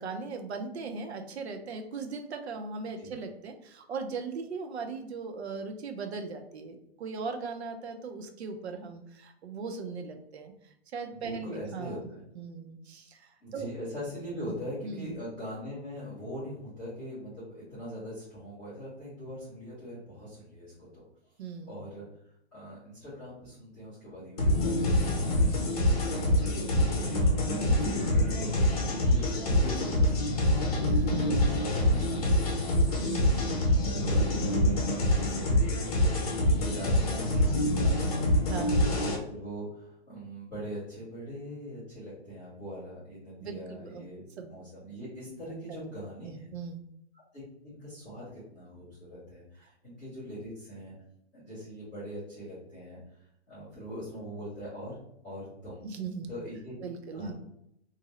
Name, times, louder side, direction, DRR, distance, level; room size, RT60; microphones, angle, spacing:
voice 1, 0.0-12.1 12.3-13.7 14.4-14.6 14.8-15.2 21.4-21.9 30.8-31.4 33.0-33.5 37.7-38.2 38.4-39.0 43.4-44.1 44.4-44.6 46.2-46.8 55.8-56.3 56.8-57.3, right 4 dB, 75° right, 6 dB, 0.6 m, -39 dB
voice 2, 11.1-12.2 13.4-21.0 21.7-22.1 22.5-25.7 26.0-30.7 31.4-33.3 34.0-35.6 36.5-38.3 38.9-44.2 44.5-46.5 47.3-50.9 51.3-53.0 53.5-55.0 55.2-55.9 56.3-56.7 57.1-57.3, equal, ahead, -20 dB, 0.4 m, -42 dB
sound 1, 24.4-39.2, left 1 dB, 35° left, 0.7 m, -26 dB
2.6 x 2.0 x 3.9 m, 0.77 s
hypercardioid pair, 175°, 33 cm